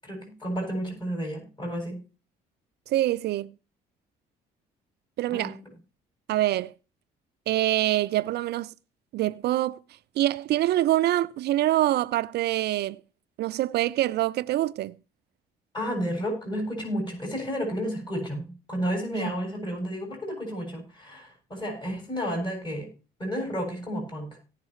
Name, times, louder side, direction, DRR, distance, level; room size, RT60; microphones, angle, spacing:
voice 1, 0.0-2.0 5.3-5.5 15.7-22.9 23.2-24.3, equal, 25° left, 7.3 m, -31 dB
voice 2, 2.9-3.5 5.2-5.6 6.3-6.7 7.5-8.7 9.1-9.8 10.2-13.0 13.4-15.0 19.1-19.3, right 14 dB, 65° right, 0.5 m, -25 dB
17.5 x 6.6 x 3.1 m
supercardioid pair, 70°, 18 cm